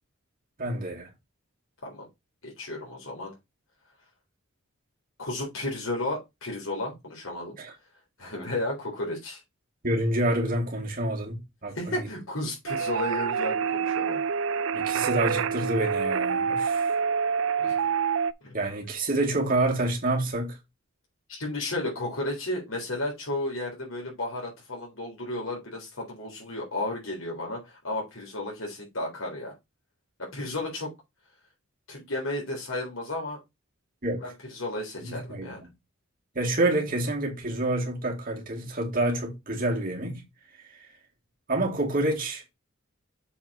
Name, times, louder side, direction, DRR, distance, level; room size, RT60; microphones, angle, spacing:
voice 1, 0.6-1.1 7.6-7.7 9.8-12.1 14.7-16.9 18.5-20.6 34.0-34.2 35.0-35.7 36.3-40.2 41.5-42.4, right 1 dB, 40° right, 2.4 m, -28 dB
voice 2, 2.4-3.3 5.2-7.6 8.2-9.4 11.8-14.2 17.6-17.8 18.4-18.6 21.3-29.5 30.2-30.9 31.9-33.4 34.2-35.6, left 2 dB, 75° left, 3.7 m, -33 dB
sound 1, 12.7-18.3, right 6 dB, 70° right, 0.4 m, -27 dB
7.2 x 4.5 x 4.3 m
head